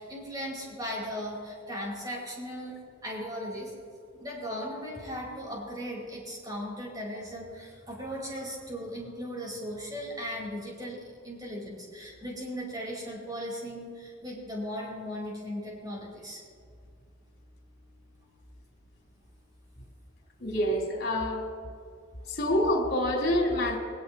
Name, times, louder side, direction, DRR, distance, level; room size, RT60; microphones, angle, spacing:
voice 1, 0.0-2.8 3.0-3.7 4.1-16.4, equal, 20° right, -3 dB, 4.7 m, -37 dB
voice 2, 20.4-21.4 22.3-23.8, left 1 dB, 60° left, -1 dB, 3.9 m, -26 dB
24.5 x 17.5 x 3.1 m, 2.2 s
head